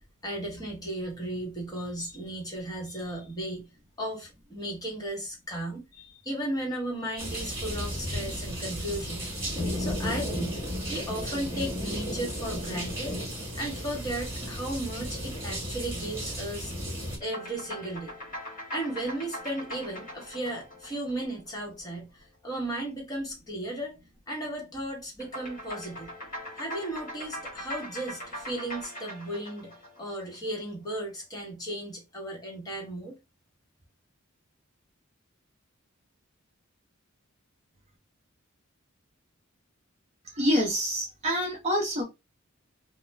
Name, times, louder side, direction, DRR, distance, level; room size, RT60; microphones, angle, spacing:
voice 1, 0.2-3.6 4.0-9.2 9.8-10.6 10.9-13.2 13.6-16.7 17.2-18.1 18.7-24.0 24.3-26.1 26.6-29.7 30.0-33.2, right 1 dB, 20° left, 1.1 m, -35 dB
sound 1, 7.2-17.2, equal, 10° right, 1.3 m, -34 dB
sound 2, 17.2-21.9 25.2-30.6, equal, 40° left, 1.3 m, -41 dB
voice 2, 40.2-42.0, equal, 30° right, 0.7 m, -27 dB
2.3 x 2.1 x 3.1 m
head